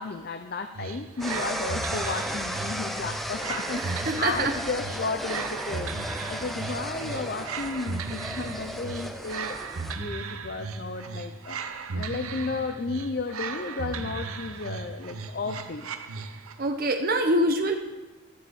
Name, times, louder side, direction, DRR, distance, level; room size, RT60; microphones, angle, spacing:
voice 1, 0.0-6.0 6.2-9.6 10.0-11.6 11.9-15.9, left 4 dB, 45° left, 7 dB, 0.5 m, -33 dB
sound 1, 0.7-16.7, right 4 dB, 85° right, 0.8 m, -36 dB
sound 2, 1.2-10.0, equal, ahead, 0.6 m, -35 dB
voice 2, 3.8-4.5 16.6-17.7, right 1 dB, 45° right, 4 dB, 0.9 m, -25 dB
11.5 x 5.7 x 7.9 m, 1.2 s
head